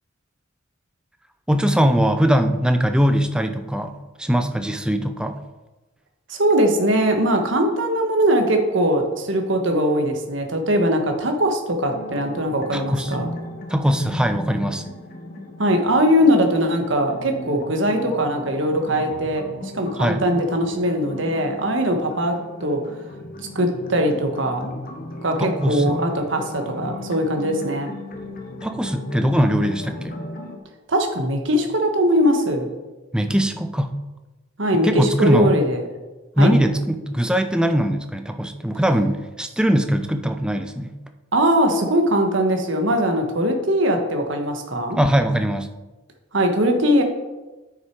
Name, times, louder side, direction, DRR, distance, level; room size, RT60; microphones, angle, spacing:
voice 1, 1.5-5.4 12.7-13.1 13.7-14.8 20.0-20.3 25.4-26.0 28.6-30.2 33.1-34.0 34.8-35.6 36.4-40.9 45.0-45.7, equal, 5° right, 7 dB, 0.5 m, -21 dB
voice 2, 6.3-13.3 15.6-22.8 23.5-24.7 25.2-27.9 30.9-32.7 34.6-35.8 36.4-36.5 41.3-45.0 46.3-47.0, equal, 60° right, 4 dB, 1.4 m, -21 dB
sound 1, 11.9-30.6, left 1 dB, 45° left, 1.2 m, -36 dB
9.2 x 6.6 x 4.6 m, 1.1 s
head